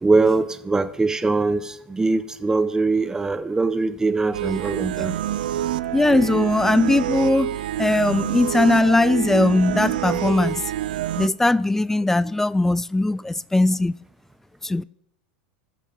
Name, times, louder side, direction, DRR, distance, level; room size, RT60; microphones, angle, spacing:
voice 1, 0.0-5.2, right 3 dB, 10° right, 0.9 m, -22 dB
sound 1, 4.3-11.3, right 12 dB, 75° right, 0.4 m, -27 dB
voice 2, 5.9-10.7 11.2-13.9 14.6-14.8, left 2 dB, 5° left, 0.3 m, -20 dB
19.5 x 6.8 x 3.5 m
hypercardioid pair, 100°, 5 cm